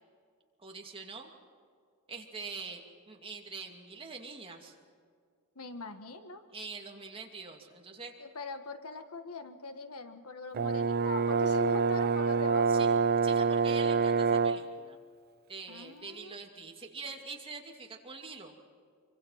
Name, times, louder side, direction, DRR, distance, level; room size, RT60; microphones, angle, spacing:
voice 1, 0.6-1.3 2.1-2.8 3.1-4.8 6.5-8.1 12.7-13.0 13.2-15.0 15.5-18.5, right 4 dB, 25° right, 2 dB, 2.6 m, -44 dB
voice 2, 5.5-6.4 8.2-12.9 15.7-16.4, left 3 dB, 75° left, 8 dB, 1.6 m, -42 dB
Brass instrument, 10.5-14.7, right 5 dB, 45° right, 0.5 m, -26 dB
26.0 x 24.5 x 5.8 m, 2.1 s
head